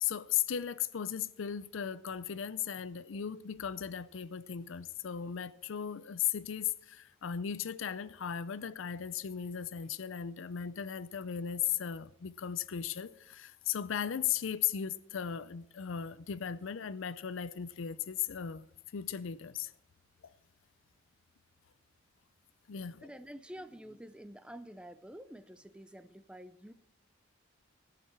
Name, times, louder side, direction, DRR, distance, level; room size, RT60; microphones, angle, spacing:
voice 1, 0.0-18.7 18.9-19.7 20.2-20.3 22.7-23.1, left 9 dB, 65° left, 0.5 m, -36 dB
voice 2, 22.8-26.7, equal, 5° right, 0.4 m, -49 dB
14.0 x 6.7 x 7.4 m
head